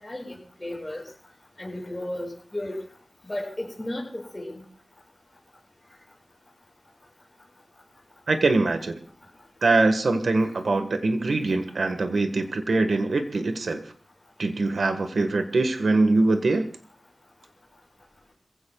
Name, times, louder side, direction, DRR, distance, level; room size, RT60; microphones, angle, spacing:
voice 1, 0.0-1.0 1.6-2.8 3.3-4.6, left 1 dB, 20° left, -2 dB, 7.3 m, -34 dB
voice 2, 8.3-9.0 9.6-13.8 14.4-16.7, right 3 dB, 85° right, 7 dB, 1.5 m, -23 dB
27.0 x 16.0 x 2.3 m, 0.43 s
wide cardioid pair, 80°, 0 cm